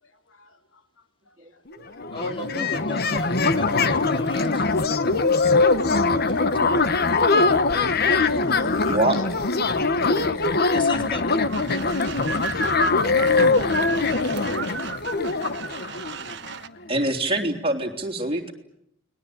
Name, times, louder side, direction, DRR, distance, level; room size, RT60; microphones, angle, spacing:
voice 1, 0.0-2.2 5.5-5.6 8.1-10.8 12.5-12.7 15.9-16.3 18.2-18.3, left 2 dB, 80° left, 2.8 m, -43 dB
voice 2, 1.4-1.8 8.9-9.2 16.9-18.5, right 1 dB, 30° right, 3.5 m, -25 dB
sound 1, 1.7-1.8 2.0-16.6, left 3 dB, 50° left, 1.3 m, -22 dB
voice 3, 2.1-4.6 6.3-6.4 8.1-8.2 10.7-11.4, left 1 dB, 25° left, 3.1 m, -35 dB
sound 2, 11.5-16.7, right 5 dB, 60° right, 1.3 m, -33 dB
30.0 x 20.5 x 8.8 m
head